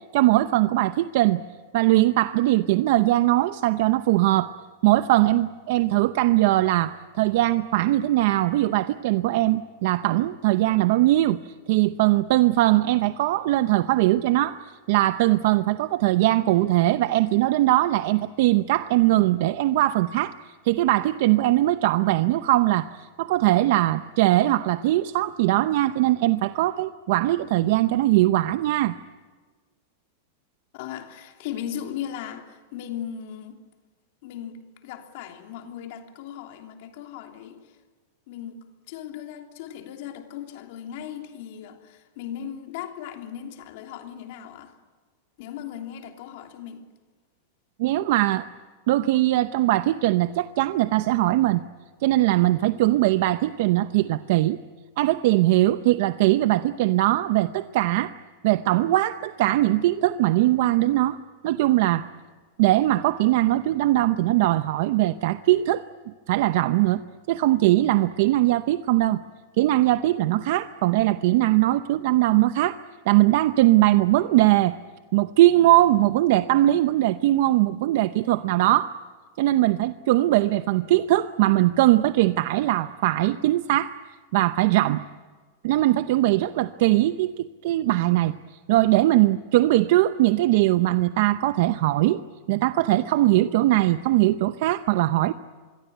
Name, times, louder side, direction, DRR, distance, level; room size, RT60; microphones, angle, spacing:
voice 1, 0.1-1.4 1.7-4.5 4.8-11.4 11.7-14.6 14.9-20.3 20.6-28.9 47.8-48.5 48.9-51.6 52.0-54.6 55.0-58.1 58.4-61.2 61.4-62.1 62.6-65.8 66.3-67.0 67.3-69.2 69.6-72.8 73.1-74.8 75.1-78.9 79.4-83.9 84.3-85.0 85.6-88.3 88.7-92.2 92.5-95.3, right 16 dB, 55° right, 0.7 m, -20 dB
voice 2, 30.7-33.6 34.2-37.7 38.3-44.7 45.4-46.9, left 10 dB, 55° left, 3.0 m, -37 dB
26.0 x 22.5 x 9.3 m
supercardioid pair, 160°, 0 cm